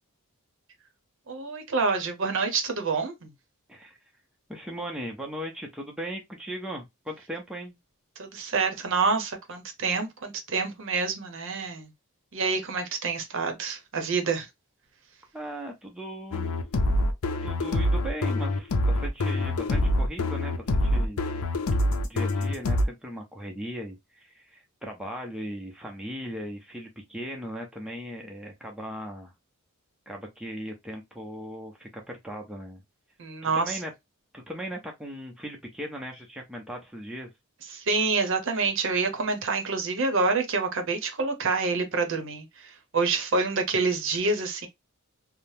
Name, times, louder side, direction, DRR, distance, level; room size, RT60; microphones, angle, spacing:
voice 1, 1.3-3.3 8.2-11.9 12.3-14.5 33.2-33.8 37.7-44.7, right 4 dB, 60° right, 0.7 m, -27 dB
voice 2, 4.5-7.8 15.3-16.5 17.4-21.2 22.0-29.3 30.1-32.8 33.4-33.9 34.3-37.3, equal, 5° right, 0.5 m, -38 dB
sound 1, 16.3-22.9, left 1 dB, 85° left, 0.5 m, -25 dB
3.2 x 2.0 x 2.6 m
head